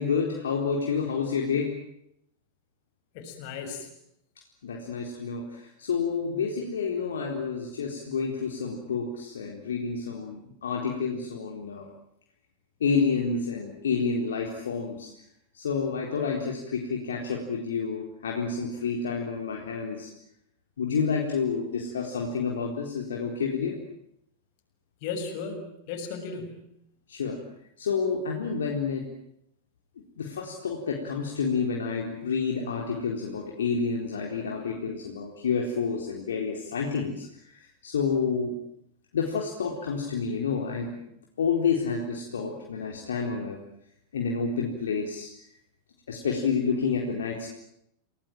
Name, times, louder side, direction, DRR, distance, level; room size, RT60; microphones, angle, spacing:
voice 1, 0.0-1.7 4.6-11.9 12.8-15.1 15.5-20.1 20.8-23.7 27.1-27.4 27.8-29.1 30.2-37.3 37.8-38.6 39.1-41.0 41.4-43.6 44.1-45.3 46.1-47.5, left 5 dB, 65° left, 0 dB, 4.1 m, -29 dB
voice 2, 3.1-3.9 25.0-26.7, left 5 dB, 45° left, 5 dB, 6.8 m, -35 dB
29.5 x 19.0 x 9.2 m, 0.77 s
figure-of-eight pair, 90°, 0 cm